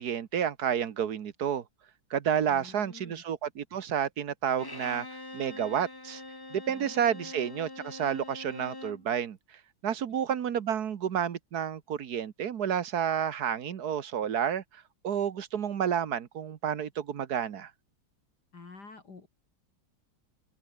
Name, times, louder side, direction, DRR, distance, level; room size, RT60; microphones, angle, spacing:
voice 1, 0.0-1.6 2.1-5.1 5.3-6.2 6.5-9.4 9.8-17.7, right 8 dB, 55° right, 1.5 m, -30 dB
voice 2, 2.5-3.2 6.7-7.3 10.1-10.2 18.5-19.3, left 4 dB, 50° left, 3.4 m, -49 dB
Bowed string instrument, 4.6-9.1, left 2 dB, 15° left, 1.2 m, -44 dB
omnidirectional pair, 2.3 m